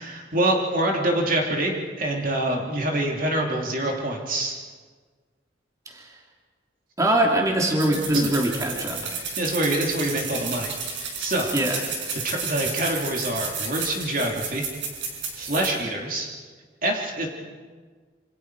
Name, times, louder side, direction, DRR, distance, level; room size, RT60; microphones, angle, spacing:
voice 1, 0.0-4.6 8.1-8.3 9.4-11.5 12.2-14.6 15.3-16.3 16.8-17.3, right 1 dB, 45° right, 0 dB, 2.9 m, -25 dB
voice 2, 7.0-9.1 11.5-11.8, right 1 dB, 20° right, -1 dB, 3.0 m, -23 dB
sound 1, 7.8-15.7, right 5 dB, 80° right, 5.5 m, -32 dB
27.5 x 26.5 x 4.8 m, 1.5 s
head